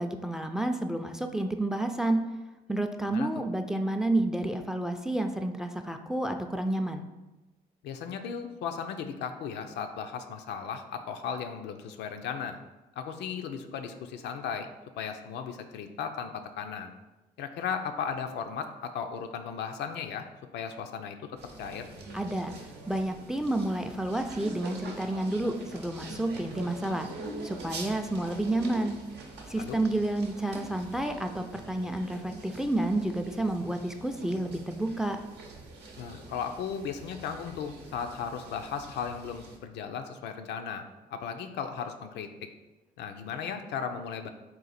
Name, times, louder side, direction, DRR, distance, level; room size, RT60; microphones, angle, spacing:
voice 1, 0.0-2.2 2.7-7.0 22.1-27.1 27.4-29.0 29.5-35.2, right 1 dB, 5° right, 6 dB, 0.4 m, -30 dB
voice 2, 7.8-12.6 13.0-14.7 15.0-16.9 17.4-20.3 20.5-21.3 21.6-21.9 29.6-29.8 36.0-40.8 41.1-42.3 43.0-44.3, left 7 dB, 80° left, 6 dB, 0.4 m, -36 dB
sound 1, 21.4-39.6, right 2 dB, 75° right, 0.7 m, -45 dB
3.8 x 2.5 x 4.1 m, 1.1 s
supercardioid pair, 60°, 17 cm